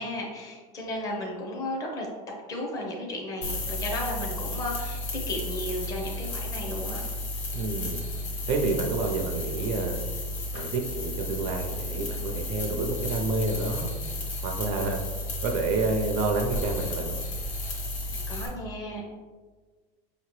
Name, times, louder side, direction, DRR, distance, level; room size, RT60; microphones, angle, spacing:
voice 1, 0.0-2.1 2.5-7.0 18.3-19.1, left 1 dB, 20° left, -1 dB, 0.6 m, -34 dB
sound 1, 3.4-18.5, left 1 dB, 40° left, 1.0 m, -33 dB
voice 2, 7.5-8.0 8.5-10.0 10.5-13.9 14.4-15.0 15.4-17.2, right 3 dB, 45° right, 3 dB, 0.4 m, -29 dB
5.2 x 2.9 x 3.0 m, 1.4 s
cardioid pair, 175°, 19 cm